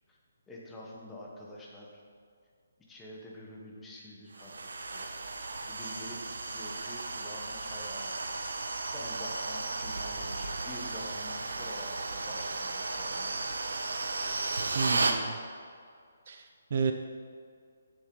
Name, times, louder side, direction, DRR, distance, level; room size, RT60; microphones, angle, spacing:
voice 1, 0.5-2.0 2.9-5.1 5.7-13.6, left 1 dB, 5° left, -4 dB, 0.9 m, -47 dB
sound 1, 4.3-15.2, right 3 dB, 90° right, 0.9 m, -34 dB
voice 2, 14.8-15.4 16.3-16.4 16.7-16.9, right 6 dB, 40° right, 6 dB, 0.5 m, -30 dB
11.0 x 7.0 x 3.8 m, 2.2 s
hypercardioid pair, 175°, 0 cm